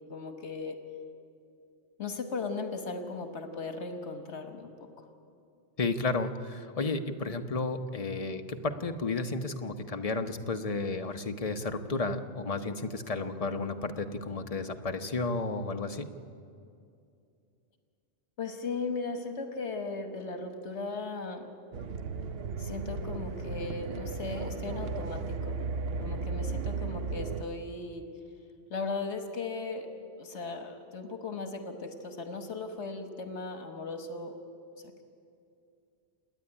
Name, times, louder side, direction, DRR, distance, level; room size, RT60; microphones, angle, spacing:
voice 1, 0.1-0.8 2.0-4.7 5.0-5.1 18.4-21.5 22.6-25.6 26.0-28.1 28.7-29.9 30.2-34.4 34.8-35.0, left 4 dB, 75° left, 7 dB, 1.5 m, -37 dB
voice 2, 5.8-16.1, left 3 dB, 35° left, 6 dB, 0.9 m, -32 dB
sound 1, 21.7-27.4, right 4 dB, 65° right, 0.9 m, -35 dB
27.0 x 9.8 x 9.8 m, 2.5 s
omnidirectional pair, 1.2 m